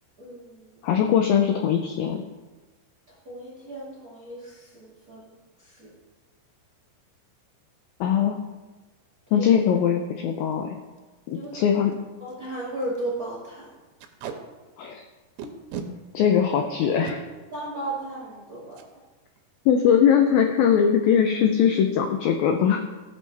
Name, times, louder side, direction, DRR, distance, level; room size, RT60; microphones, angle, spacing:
voice 1, 0.2-0.8 3.1-5.3 5.6-5.9 9.4-9.6 11.3-11.9 12.2-13.7 17.0-17.2 17.5-18.8, right 1 dB, 40° right, -6 dB, 1.3 m, -35 dB
voice 2, 0.8-2.2 8.0-8.4 9.3-10.8 11.3-11.9 14.8-15.0 16.1-17.2 19.7-22.9, left 8 dB, 85° left, 4 dB, 2.0 m, -21 dB
Packing tape duct tape, 10.3-10.5 11.0-11.1 11.3-11.5 11.9-12.0 12.3-12.5 12.8-13.0 14.0-14.4 15.4-15.9 16.8-17.2 18.7-18.9 19.3-19.4 19.7-20.1, right 7 dB, 80° right, 2.7 m, -36 dB
15.5 x 6.5 x 3.4 m, 1.2 s
omnidirectional pair, 4.9 m